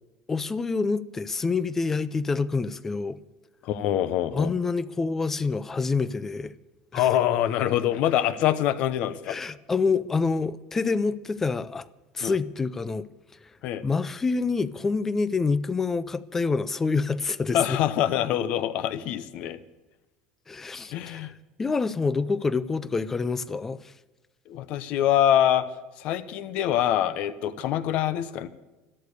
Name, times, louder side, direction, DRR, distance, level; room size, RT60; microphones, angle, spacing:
voice 1, 0.3-3.2 4.3-6.5 6.9-7.1 9.3-11.9 12.1-13.1 13.8-17.8 20.5-21.3 21.6-23.8, left 4 dB, 10° left, 0.4 m, -27 dB
voice 2, 3.6-4.5 6.9-9.4 12.2-12.3 13.6-13.8 17.5-19.6 20.9-21.3 24.5-25.7 26.0-28.5, left 11 dB, 45° left, 0.9 m, -25 dB
13.5 x 13.0 x 6.6 m
cardioid pair, 175°, 3 cm